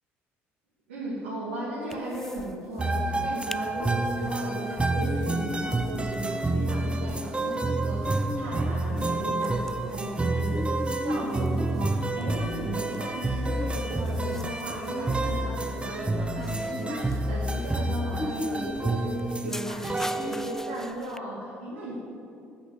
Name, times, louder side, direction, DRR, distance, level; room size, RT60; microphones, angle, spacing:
voice 1, 0.9-21.9, right 1 dB, 85° right, -7 dB, 1.9 m, -36 dB
sound 1, 1.9-2.5 2.8-2.9 3.2-3.6 4.0-21.2, left 1 dB, 5° left, 0.3 m, -38 dB
sound 2, 2.8-20.9, right 2 dB, 15° right, 0.9 m, -29 dB
8.8 x 6.0 x 7.8 m, 2.5 s
hypercardioid pair, 60°, 6 cm